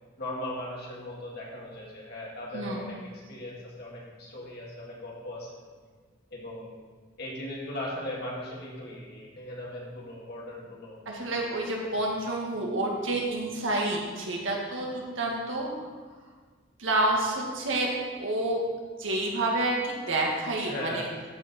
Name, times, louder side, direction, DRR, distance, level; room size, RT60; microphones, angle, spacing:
voice 1, 0.2-5.6 6.3-6.7 7.2-11.0 15.3-15.4 20.7-21.1, left 1 dB, 55° left, -4 dB, 2.4 m, -38 dB
voice 2, 11.1-15.7 16.8-17.9 18.2-18.6 19.0-21.1, right 2 dB, 75° right, -2 dB, 1.9 m, -29 dB
14.0 x 5.0 x 4.4 m, 1.5 s
head